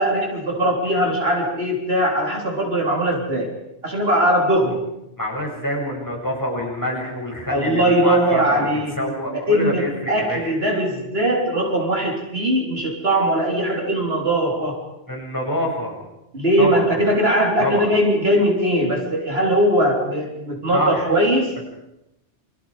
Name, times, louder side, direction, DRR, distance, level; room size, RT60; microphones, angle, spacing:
voice 1, 0.0-3.5 3.8-4.9 7.5-14.8 16.3-21.6, right 1 dB, 60° right, 0 dB, 4.1 m, -20 dB
voice 2, 5.2-8.7 9.0-10.5 15.1-16.0 16.6-16.8 17.6-17.9 20.7-21.1, equal, 15° left, -2 dB, 7.4 m, -26 dB
29.0 x 26.5 x 5.1 m, 0.86 s
omnidirectional pair, 1.2 m